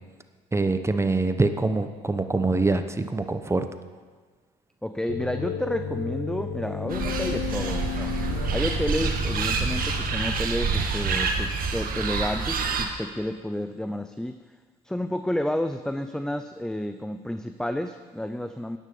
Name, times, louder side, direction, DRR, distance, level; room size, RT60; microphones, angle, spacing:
voice 1, 0.5-3.7, right 3 dB, 15° right, 8 dB, 1.0 m, -24 dB
voice 2, 4.8-8.1 8.5-14.4 14.8-18.8, left 1 dB, 5° left, 9 dB, 0.5 m, -30 dB
sound 1, 5.1-10.4, left 8 dB, 65° left, 0.7 m, -33 dB
sound 2, 6.9-12.9, right 5 dB, 55° right, 1.7 m, -27 dB
10.5 x 10.0 x 6.9 m, 1.5 s
supercardioid pair, 75°, 18 cm